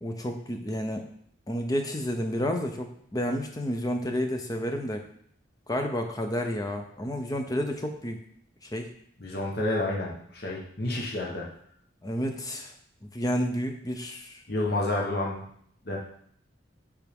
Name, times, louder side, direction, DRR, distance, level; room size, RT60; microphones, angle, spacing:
voice 1, 0.0-1.1 1.5-5.0 5.7-8.2 8.6-8.9 12.0-12.7 13.1-14.4, equal, 20° left, 4 dB, 0.6 m, -30 dB
voice 2, 9.2-11.5 14.5-15.4 15.8-16.0, left 2 dB, 55° left, -3 dB, 1.2 m, -29 dB
9.3 x 3.6 x 3.6 m, 0.65 s
head